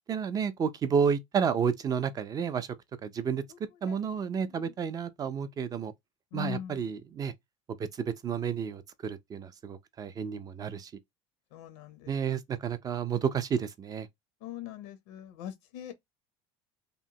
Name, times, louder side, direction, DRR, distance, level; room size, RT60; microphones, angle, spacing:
voice 1, 0.1-2.7 3.0-3.4 3.8-5.9 6.3-7.3 8.0-10.9 12.1-14.1, right 7 dB, 25° right, 0.4 m, -31 dB
voice 2, 3.9-4.3 4.6-4.7 6.3-6.8 11.5-12.1 14.4-15.9, left 10 dB, 85° left, 0.6 m, -41 dB
2.9 x 2.1 x 2.7 m
cardioid pair, 130°, 14 cm